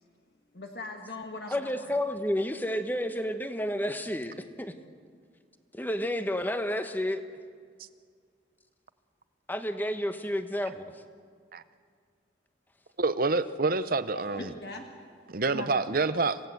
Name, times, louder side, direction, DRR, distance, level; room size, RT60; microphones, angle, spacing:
voice 1, 0.5-2.0 14.1-15.0 15.5-16.0, left 2 dB, 55° left, 3 dB, 1.5 m, -40 dB
voice 2, 1.5-4.7 5.7-7.2 9.5-11.0, equal, 10° left, 9 dB, 1.1 m, -31 dB
voice 3, 13.0-14.5 15.3-16.4, right 3 dB, 50° right, 14 dB, 0.7 m, -27 dB
27.5 x 17.0 x 7.9 m, 2.1 s
head